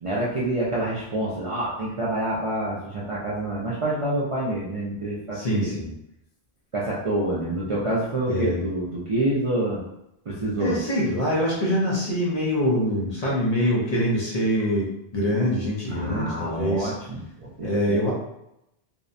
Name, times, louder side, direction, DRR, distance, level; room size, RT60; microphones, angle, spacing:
voice 1, 0.0-5.7 6.7-9.8 10.3-10.8 15.9-18.0, right 1 dB, 45° right, -7 dB, 0.4 m, -27 dB
voice 2, 5.3-5.9 8.3-8.6 10.6-16.9 17.6-18.1, equal, 45° left, -4 dB, 0.6 m, -24 dB
2.7 x 2.1 x 2.5 m, 0.83 s
omnidirectional pair, 1.0 m